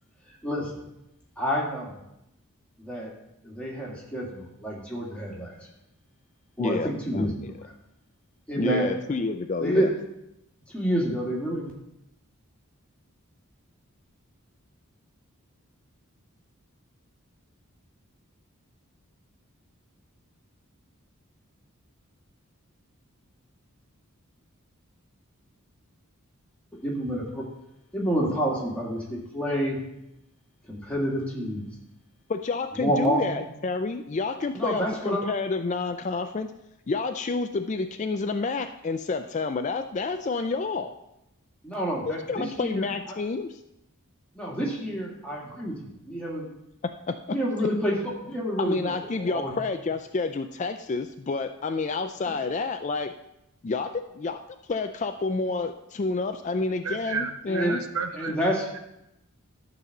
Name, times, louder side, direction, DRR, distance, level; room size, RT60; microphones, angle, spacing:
voice 1, 1.4-2.0 2.8-3.1 3.4-5.6 6.6-7.4 8.5-8.9 9.6-9.9 10.7-11.7 26.8-27.4 27.9-29.8 30.7-31.7 32.7-33.4 34.5-35.2 41.6-42.9 44.3-45.8 46.1-46.5 47.3-48.0 48.2-48.9 49.2-49.6 57.5-57.8 58.1-58.7, equal, 5° left, -4 dB, 2.1 m, -28 dB
voice 2, 6.6-7.5 8.5-9.9 32.3-36.5 36.9-41.0 42.1-43.6 47.1-47.4 48.6-53.1 53.6-54.4 54.7-57.8, left 3 dB, 35° left, 8 dB, 0.3 m, -29 dB
voice 3, 56.8-58.4, right 5 dB, 75° right, 7 dB, 0.8 m, -32 dB
12.0 x 4.1 x 6.5 m, 0.86 s
head